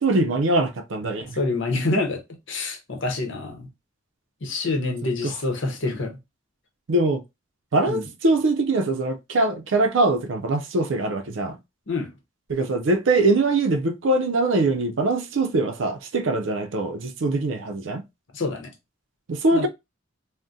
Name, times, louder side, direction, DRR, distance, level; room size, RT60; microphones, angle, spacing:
voice 1, 0.0-1.4 5.2-5.3 6.9-7.2 7.7-11.6 12.5-18.0 19.3-19.7, right 2 dB, 70° right, 0.5 m, -22 dB
voice 2, 1.4-2.2 2.5-3.7 4.4-6.2 7.9-8.0 11.9-12.1 18.3-18.7 19.5-19.7, left 2 dB, 65° left, 0.8 m, -26 dB
3.6 x 2.1 x 2.6 m
head